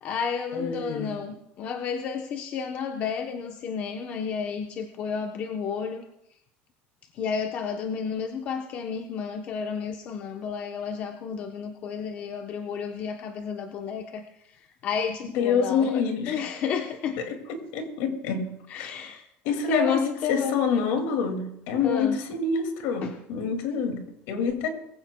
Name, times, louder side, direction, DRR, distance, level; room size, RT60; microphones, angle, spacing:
voice 1, 0.0-6.0 7.1-17.2 18.7-19.2 19.7-20.9 21.8-22.2 23.0-23.1, left 6 dB, 35° left, 5 dB, 0.8 m, -32 dB
voice 2, 0.5-1.2 15.3-16.4 17.2-18.9 19.5-24.7, left 5 dB, 65° left, 6 dB, 2.2 m, -27 dB
22.5 x 15.5 x 2.2 m, 0.78 s
cardioid pair, 165°, 5 cm